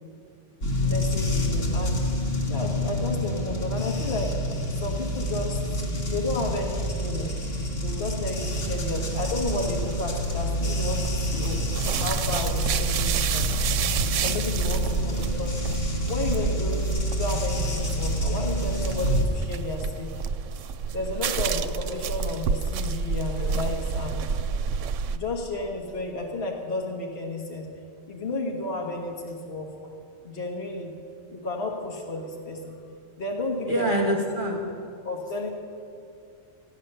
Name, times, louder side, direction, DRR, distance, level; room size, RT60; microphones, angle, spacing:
sound 1, 0.6-19.2, equal, 80° left, 2.7 m, -28 dB
voice 1, 0.8-2.0 2.5-4.3 4.7-7.3 7.8-13.5 14.2-15.6 16.1-20.2 20.9-24.2 25.1-27.7 28.1-29.7 30.2-30.9 31.3-32.8 33.2-34.1 35.0-35.5, left 2 dB, 50° left, 0 dB, 1.5 m, -32 dB
sound 2, 8.4-25.2, right 6 dB, 80° right, 1.0 m, -30 dB
voice 2, 33.7-34.6, right 1 dB, 40° right, 0 dB, 1.6 m, -26 dB
15.0 x 9.7 x 6.7 m, 2.4 s
omnidirectional pair, 1.3 m